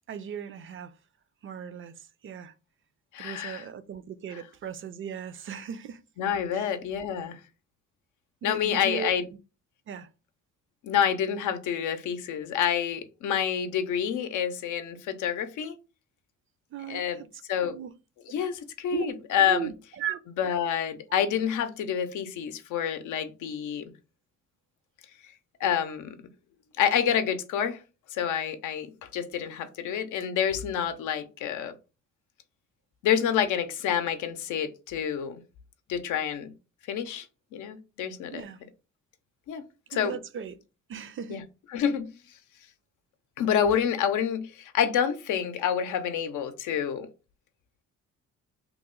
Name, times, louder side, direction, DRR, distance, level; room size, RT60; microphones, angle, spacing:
voice 1, 0.1-0.9 1.4-2.5 3.2-6.0 6.5-6.7 8.4-9.1 9.9-10.1 16.7-17.3 17.6-17.9 18.9-19.1 19.5-20.2 37.1-37.2 38.3-38.6 39.9-40.6 40.9-41.4, right 8 dB, 45° right, 0.4 m, -37 dB
voice 2, 3.1-3.7 6.2-7.4 8.4-9.2 10.8-15.7 16.9-17.2 17.5-17.8 18.3-19.6 20.4-23.8 25.6-26.1 26.8-27.8 28.1-31.7 33.0-35.4 35.9-36.5 36.9-37.3 37.5-38.4 39.5-39.6 39.9-40.2 41.3-41.4 41.7-42.1 43.4-47.1, left 8 dB, 85° left, 0.6 m, -28 dB
3.0 x 2.1 x 3.7 m
cardioid pair, 90°, 30 cm